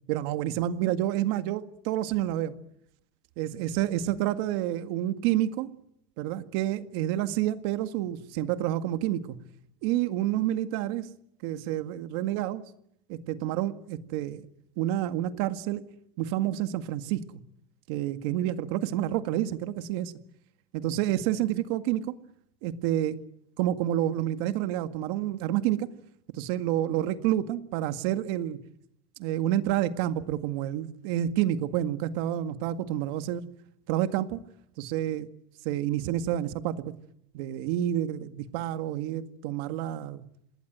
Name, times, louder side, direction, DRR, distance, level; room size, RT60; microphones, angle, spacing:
voice 1, 0.1-2.5 3.4-5.7 6.2-9.4 9.8-11.1 11.4-12.6 13.1-14.5 14.8-15.9 16.2-17.3 17.9-20.1 20.7-22.1 22.6-23.2 23.6-25.9 26.3-28.6 29.2-33.4 33.9-34.4 34.8-35.3 35.6-36.9 37.3-40.3, right 12 dB, 75° right, 10 dB, 1.9 m, -29 dB
27.5 x 20.5 x 9.2 m, 0.78 s
cardioid pair, 145°, 13 cm